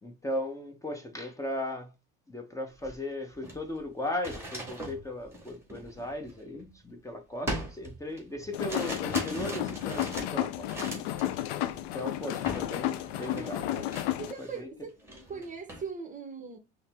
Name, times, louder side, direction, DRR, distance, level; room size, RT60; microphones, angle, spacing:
voice 1, 0.0-1.9 2.3-10.7 11.7-13.6 14.4-14.7, left 1 dB, 10° left, 0.7 m, -37 dB
sound 1, 2.8-2.9 3.3-6.9 7.5-11.4 11.7-12.0 12.5-12.7 13.0-14.6 15.0-15.9, right 1 dB, 10° right, 1.5 m, -40 dB
sound 2, 8.5-14.3, left 13 dB, 85° left, 0.5 m, -32 dB
voice 2, 13.2-13.9 14.2-14.9 15.3-16.6, right 5 dB, 25° right, 0.7 m, -40 dB
5.5 x 2.0 x 3.4 m
supercardioid pair, 105°, 30 cm